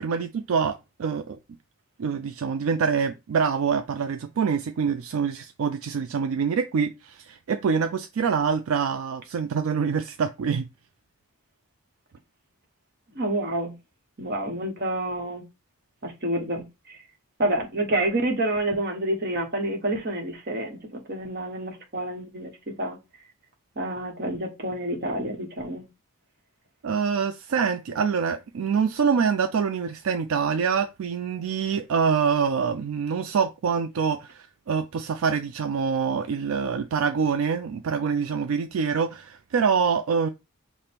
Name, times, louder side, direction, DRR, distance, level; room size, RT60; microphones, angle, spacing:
voice 1, 0.0-1.4 2.0-10.7 26.8-40.3, right 6 dB, 70° right, 0.3 m, -25 dB
voice 2, 13.1-13.8 14.2-15.4 16.0-17.0 17.4-22.5 22.8-23.0 23.8-25.8, right 1 dB, 45° right, 1.0 m, -28 dB
5.0 x 2.1 x 4.3 m
head